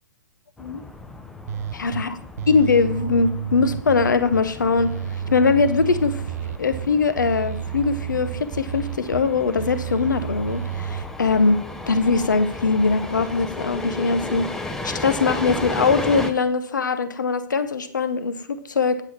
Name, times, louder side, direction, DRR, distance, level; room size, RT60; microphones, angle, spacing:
sound 1, 0.6-16.3, left 2 dB, 5° left, 0.6 m, -35 dB
sound 2, 1.5-2.0 2.4-4.4 4.8-6.9 7.2-9.2 9.6-11.0, right 10 dB, 50° right, 0.5 m, -31 dB
voice 1, 1.8-2.2 2.5-4.9 5.3-6.2 6.6-11.6 11.9-14.5 14.8-19.0, left 4 dB, 70° left, 10 dB, 1.0 m, -21 dB
8.5 x 8.0 x 4.6 m, 0.63 s
figure-of-eight pair, 115°, 10 cm